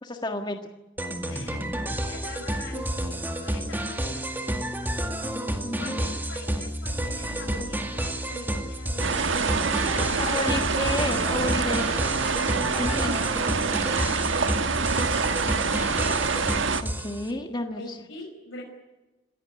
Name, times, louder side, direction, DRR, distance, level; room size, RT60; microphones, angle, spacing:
voice 1, 0.0-0.6 5.6-6.1 10.2-12.2 12.8-13.4 16.8-18.0, left 2 dB, 20° left, 4 dB, 1.6 m, -32 dB
sound 1, 1.0-17.3, right 1 dB, 10° right, 2.1 m, -30 dB
voice 2, 1.3-1.6 2.1-4.3 5.8-9.5 9.9-10.6 13.9-15.7 17.8-18.6, left 2 dB, 85° left, -1 dB, 5.6 m, -43 dB
sound 2, 9.0-16.8, right 5 dB, 75° right, 1.4 m, -26 dB
27.0 x 15.5 x 9.7 m, 1.0 s
head